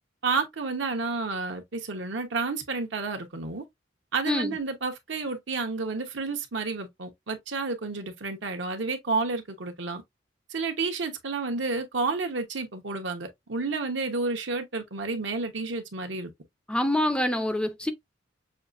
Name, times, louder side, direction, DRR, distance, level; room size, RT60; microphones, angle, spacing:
voice 1, 0.2-3.6 4.1-10.0 10.5-16.3, right 3 dB, 75° right, 1.0 m, -30 dB
voice 2, 4.3-4.6 16.7-17.9, left 1 dB, 5° left, 0.4 m, -26 dB
6.3 x 2.4 x 2.5 m
head